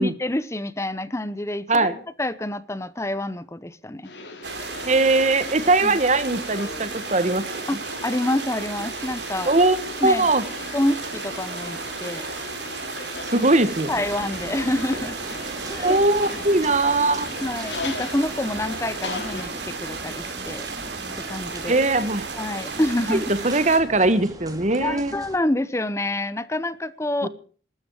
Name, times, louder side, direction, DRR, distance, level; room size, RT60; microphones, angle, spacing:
voice 1, 0.0-4.1 5.8-6.0 7.7-9.5 10.0-10.3 10.7-12.2 13.9-15.2 15.7-16.0 17.4-20.7 21.2-21.8 22.3-23.3 24.8-27.3, left 1 dB, 15° left, 0.8 m, -27 dB
voice 2, 1.7-2.0 4.9-7.4 9.4-9.8 10.0-10.4 13.2-13.9 15.8-17.3 21.7-22.3 23.1-25.1 27.2-27.3, right 2 dB, 40° right, 1.5 m, -20 dB
sound 1, 4.0-19.4, left 3 dB, 75° left, 3.9 m, -38 dB
sound 2, 4.4-23.8, right 4 dB, 80° right, 3.9 m, -34 dB
sound 3, 13.9-25.4, right 1 dB, 20° right, 2.5 m, -40 dB
20.0 x 13.0 x 4.8 m
head